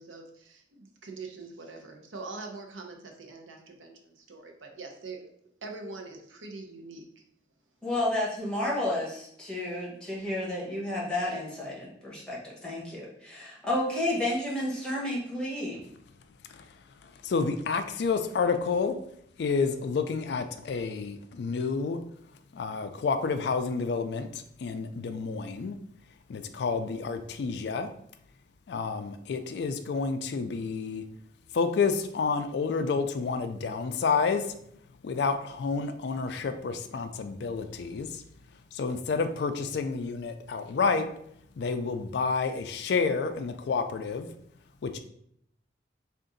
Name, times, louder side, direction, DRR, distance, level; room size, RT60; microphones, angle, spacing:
voice 1, 0.0-5.3 5.6-7.2, right 3 dB, 90° right, 3 dB, 0.7 m, -43 dB
voice 2, 7.8-15.8, left 1 dB, 5° left, -5 dB, 1.0 m, -31 dB
voice 3, 16.5-19.0 19.4-22.0 22.5-25.8 26.3-27.9 28.7-31.0 31.5-34.5 35.0-38.2 38.7-41.1 41.6-44.3 44.8-45.0, left 5 dB, 60° left, 8 dB, 0.3 m, -29 dB
3.6 x 2.5 x 3.9 m, 0.69 s
head